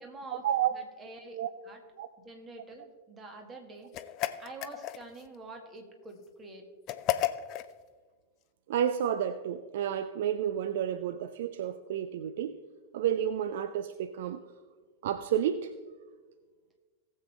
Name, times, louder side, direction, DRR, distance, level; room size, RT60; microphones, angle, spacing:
voice 1, 0.0-0.4 0.7-1.4 1.6-1.8 2.2-3.9 4.4-6.7, right 2 dB, 20° right, 3 dB, 1.9 m, -46 dB
sound 1, 3.9-5.3 6.9-7.7, left 13 dB, 40° left, 0.5 m, -32 dB
voice 2, 8.7-12.6 12.9-14.4 15.0-15.7, right 10 dB, 55° right, 11 dB, 0.4 m, -30 dB
18.5 x 7.5 x 3.3 m, 1.4 s
figure-of-eight pair, 90°, 0 cm